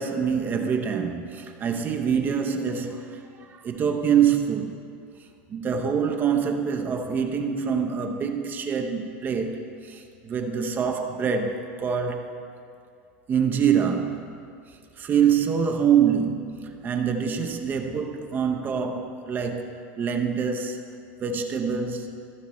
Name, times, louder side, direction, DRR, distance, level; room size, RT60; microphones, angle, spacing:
voice 1, 0.0-4.8 5.5-12.4 13.3-14.4 15.0-20.9 21.2-22.1, right 7 dB, 30° right, 0.7 m, -25 dB
15.5 x 5.7 x 3.1 m
supercardioid pair, 130°, 6 cm